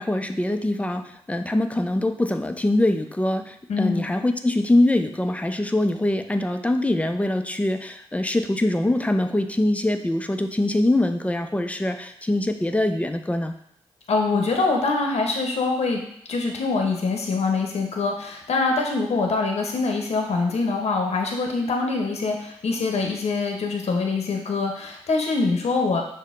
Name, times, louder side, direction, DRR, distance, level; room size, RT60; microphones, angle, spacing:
voice 1, 0.0-13.5, left 1 dB, 10° left, 7 dB, 0.4 m, -23 dB
voice 2, 3.7-4.1 14.1-16.0 16.3-26.0, left 3 dB, 60° left, 2 dB, 0.7 m, -24 dB
6.2 x 2.1 x 2.5 m, 0.78 s
supercardioid pair, 45°, 12 cm